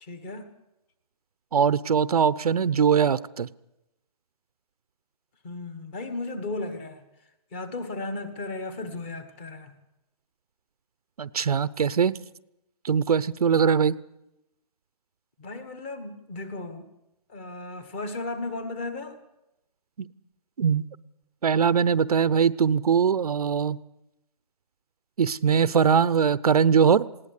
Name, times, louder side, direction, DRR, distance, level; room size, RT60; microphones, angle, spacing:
voice 1, 0.0-0.5 5.4-7.0 7.5-9.8 15.4-16.9 17.3-19.2, left 2 dB, 15° left, 1.3 m, -35 dB
voice 2, 1.5-3.5 11.2-12.2 12.8-13.9 20.6-20.8 21.4-23.8 25.2-27.1, right 7 dB, 65° right, 0.7 m, -21 dB
19.5 x 17.5 x 8.3 m
hypercardioid pair, 175°, 20 cm